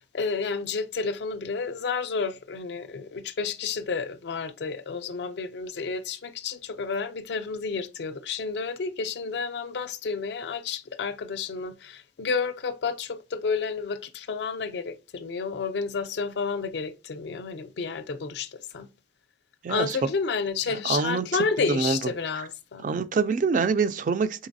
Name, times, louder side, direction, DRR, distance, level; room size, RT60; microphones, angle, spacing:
voice 1, 0.0-18.9 19.7-22.8, left 5 dB, 70° left, 0.4 m, -31 dB
voice 2, 19.6-20.0 20.8-21.2 21.6-22.0 22.8-24.5, right 5 dB, 45° right, 0.3 m, -25 dB
3.9 x 3.1 x 2.6 m
head